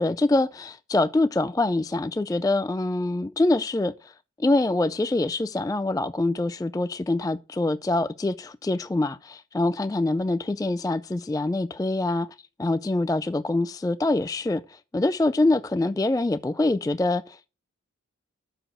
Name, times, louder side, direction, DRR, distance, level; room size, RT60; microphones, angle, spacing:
voice 1, 0.0-12.3 12.6-17.5, left 2 dB, 15° left, 0.4 m, -25 dB
6.8 x 6.1 x 6.2 m
wide cardioid pair, 55°, 30 cm